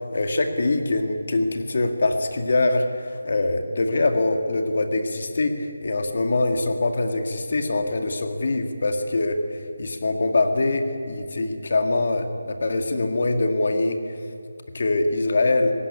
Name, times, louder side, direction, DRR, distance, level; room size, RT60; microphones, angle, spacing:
voice 1, 0.1-2.9 3.2-9.4 9.8-14.0 14.7-15.7, left 2 dB, 50° left, 5 dB, 2.1 m, -23 dB
18.5 x 17.5 x 9.9 m, 2.3 s
figure-of-eight pair, 170°, 0 cm